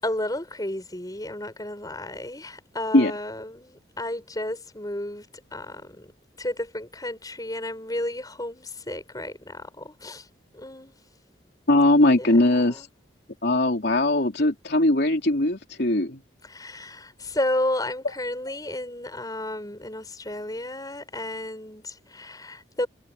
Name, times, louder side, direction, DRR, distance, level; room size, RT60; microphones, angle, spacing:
voice 1, 0.0-5.3 5.5-6.1 6.4-10.3 10.5-10.9 12.0-12.9 16.4-22.9, left 1 dB, 20° left, 5.7 m, -32 dB
voice 2, 11.7-12.9 13.4-16.2, left 1 dB, 60° left, 3.3 m, -20 dB
head